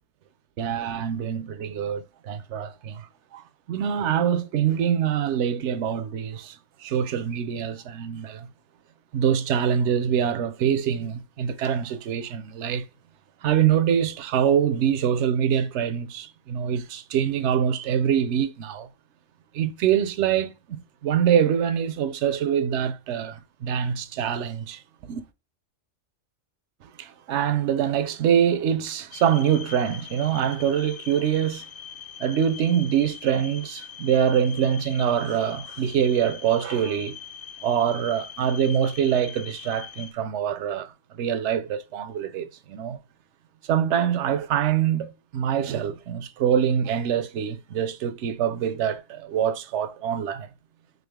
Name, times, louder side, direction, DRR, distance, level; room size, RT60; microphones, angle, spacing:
voice 1, 0.6-3.1 3.3-3.4 3.7-6.6 6.8-8.5 9.1-12.8 13.4-18.9 19.5-24.8 25.1-25.2 27.0-31.6 32.2-37.2 37.6-43.0 43.7-50.5, right 9 dB, 75° right, 0.9 m, -24 dB
sound 1, 29.1-40.1, left 8 dB, 60° left, 0.7 m, -42 dB
3.8 x 3.4 x 3.5 m
omnidirectional pair, 1.2 m